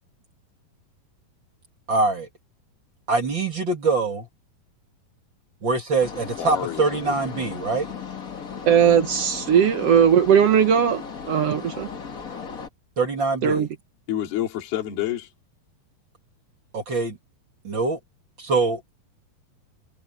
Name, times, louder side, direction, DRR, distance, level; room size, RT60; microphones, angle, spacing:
voice 1, 1.9-2.3 3.1-4.3 5.6-7.9 13.0-13.6 16.7-17.2 17.6-18.0 18.4-18.9, right 3 dB, 35° right, 2.6 m, -24 dB
sound 1, 6.0-12.7, left 5 dB, 45° left, 1.0 m, -36 dB
voice 2, 6.4-7.7 14.1-15.3, left 11 dB, 75° left, 4.5 m, -29 dB
voice 3, 8.7-11.0 11.3-11.9 13.4-13.7, right 8 dB, 80° right, 1.3 m, -18 dB
omnidirectional pair, 4.4 m